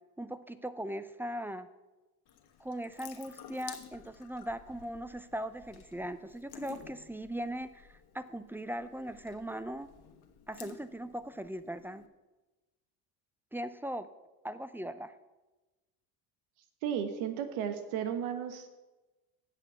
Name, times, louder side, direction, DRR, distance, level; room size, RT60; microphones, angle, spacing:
voice 1, 0.2-1.7 2.6-9.9 10.5-12.0 13.5-14.1 14.4-15.1, right 1 dB, 5° right, 13 dB, 0.5 m, -39 dB
Water tap faucet / Sink (filling or washing) / Drip, 2.3-12.1, left 9 dB, 50° left, 1.3 m, -53 dB
voice 2, 16.8-18.7, right 8 dB, 75° right, 8 dB, 1.3 m, -34 dB
8.1 x 6.7 x 8.0 m, 1.1 s
hypercardioid pair, 65°, 48 cm